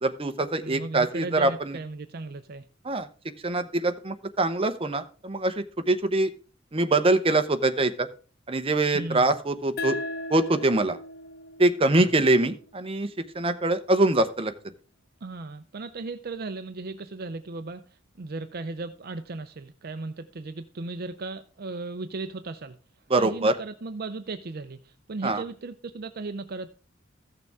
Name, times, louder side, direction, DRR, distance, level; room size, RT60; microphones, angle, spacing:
voice 1, 0.0-1.8 2.8-3.1 3.4-6.3 6.7-8.1 8.5-10.0 10.3-11.0 11.6-13.1 13.3-14.5 23.1-23.5 25.2-25.4, right 2 dB, 30° right, 9 dB, 0.9 m, -24 dB
voice 2, 0.6-2.6 8.9-9.3 12.0-12.1 15.2-17.8 18.2-22.8 23.2-26.7, right 3 dB, 50° right, 11 dB, 0.6 m, -36 dB
sound 1, 9.8-13.0, left 2 dB, 50° left, 0.8 m, -37 dB
14.5 x 6.7 x 3.6 m, 0.37 s
head